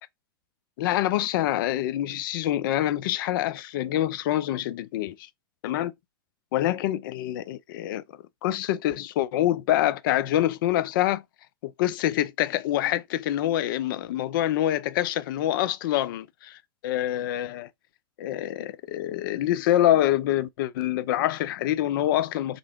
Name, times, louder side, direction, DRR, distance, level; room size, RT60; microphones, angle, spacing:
voice 1, 0.8-5.2 5.6-5.9 6.5-8.0 8.4-11.2 11.6-17.7 18.2-22.6, left 13 dB, 60° left, 0.5 m, -26 dB
3.9 x 3.3 x 3.5 m
hypercardioid pair, 120°, 12 cm